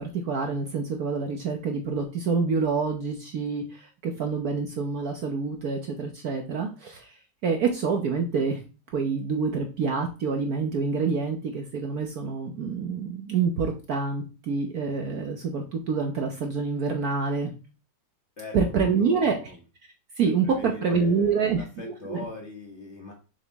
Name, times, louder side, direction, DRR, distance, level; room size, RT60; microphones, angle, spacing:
voice 1, 0.0-7.1 7.4-8.6 8.9-17.5 18.5-19.4 20.2-22.2, right 5 dB, 60° right, 3 dB, 1.2 m, -27 dB
voice 2, 18.4-19.6 20.4-23.1, left 3 dB, 35° left, 0 dB, 1.8 m, -41 dB
7.0 x 5.1 x 3.5 m, 0.34 s
omnidirectional pair, 2.2 m